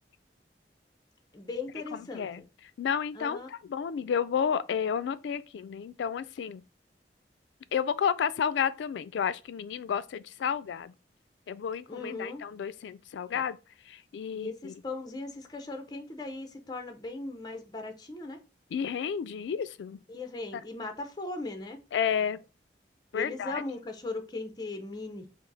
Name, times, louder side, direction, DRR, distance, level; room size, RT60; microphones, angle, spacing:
voice 1, 1.3-2.3 3.1-3.5 11.9-12.4 13.3-13.4 14.3-18.4 20.1-21.8 23.1-25.3, left 3 dB, 25° left, 0.6 m, -38 dB
voice 2, 1.9-2.4 2.8-6.6 7.7-10.9 11.5-13.6 13.9-14.7 18.7-20.0 21.9-22.4 23.1-23.6, left 7 dB, 85° left, 0.3 m, -31 dB
4.8 x 2.0 x 3.9 m
head